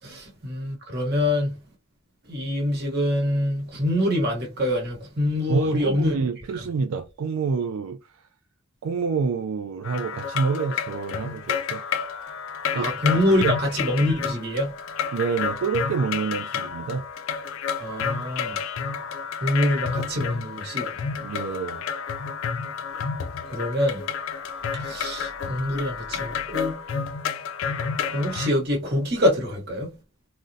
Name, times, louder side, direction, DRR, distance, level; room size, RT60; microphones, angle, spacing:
voice 1, 0.0-1.6 2.3-6.1 12.7-14.7 17.8-18.5 19.4-20.9 23.5-24.0 24.8-26.7 28.1-29.9, left 1 dB, 50° right, 1.1 m, -25 dB
voice 2, 5.5-8.0 8.8-11.8 12.7-12.9 13.4-13.7 15.1-17.0 21.2-21.8, right 5 dB, 70° right, 0.3 m, -27 dB
sound 1, 9.8-28.5, left 6 dB, 70° left, 0.3 m, -30 dB
3.6 x 2.1 x 2.6 m
head